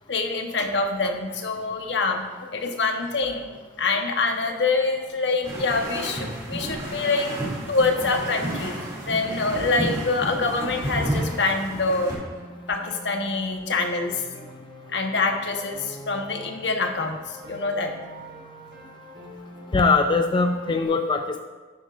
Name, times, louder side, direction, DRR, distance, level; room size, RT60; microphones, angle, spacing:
voice 1, 0.1-3.5 3.8-7.3 7.7-8.7 9.1-12.2 12.7-14.5 14.9-17.9, left 3 dB, 75° left, 4 dB, 1.0 m, -25 dB
sound 1, 5.4-12.1, right 1 dB, 20° right, 2.4 m, -31 dB
Piano, 7.1-20.9, equal, 75° right, 2.9 m, -45 dB
voice 2, 19.7-21.4, left 4 dB, 25° left, 5 dB, 0.3 m, -21 dB
11.5 x 8.5 x 2.5 m, 1.3 s
head